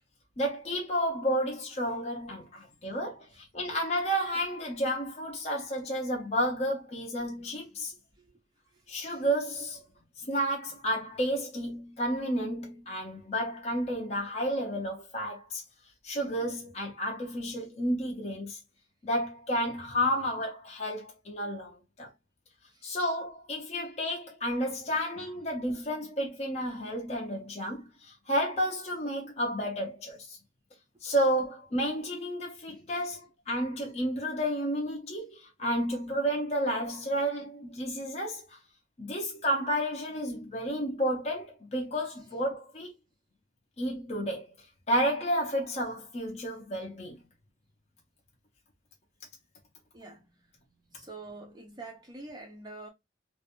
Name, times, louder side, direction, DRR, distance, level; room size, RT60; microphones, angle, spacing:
voice 1, 0.4-7.9 8.9-9.8 10.2-15.6 16.0-18.6 19.0-22.1 22.8-30.4 31.0-38.6 39.0-42.9 43.8-44.5 44.9-47.2, equal, 30° left, 0.5 m, -31 dB
voice 2, 49.9-52.9, right 2 dB, 20° right, 0.4 m, -47 dB
2.4 x 2.1 x 2.8 m
head